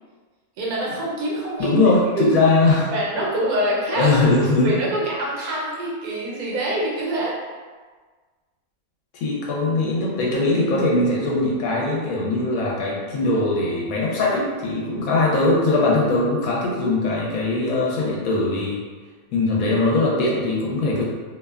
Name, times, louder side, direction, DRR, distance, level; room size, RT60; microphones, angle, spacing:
voice 1, 0.6-1.8 2.1-2.3 2.9-4.1 4.6-7.3, right 1 dB, 80° right, -4 dB, 1.2 m, -25 dB
voice 2, 1.6-2.9 3.9-4.8 9.1-18.8 19.3-21.1, left 2 dB, 80° left, -4 dB, 1.0 m, -20 dB
2.7 x 2.1 x 2.3 m, 1.4 s
omnidirectional pair, 1.5 m